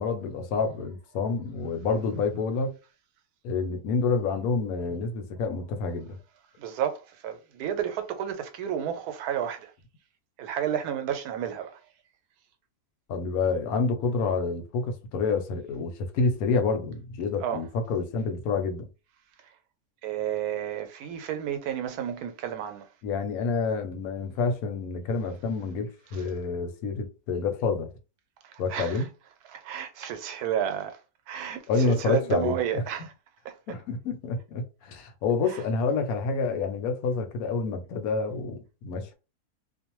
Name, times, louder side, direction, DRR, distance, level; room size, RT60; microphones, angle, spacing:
voice 1, 0.0-2.7 3.4-6.2 13.1-18.9 23.0-27.9 28.6-29.1 31.7-32.6 33.7-39.1, left 4 dB, 75° left, 1.0 m, -28 dB
voice 2, 6.6-9.7 10.4-11.8 17.4-17.6 19.4-19.5 20.0-22.9 26.1-26.2 28.4-29.1 29.5-31.0 31.3-33.1 33.4-33.6 35.5-35.6, right 9 dB, 85° right, 1.1 m, -31 dB
2.5 x 2.0 x 2.9 m
omnidirectional pair, 1.6 m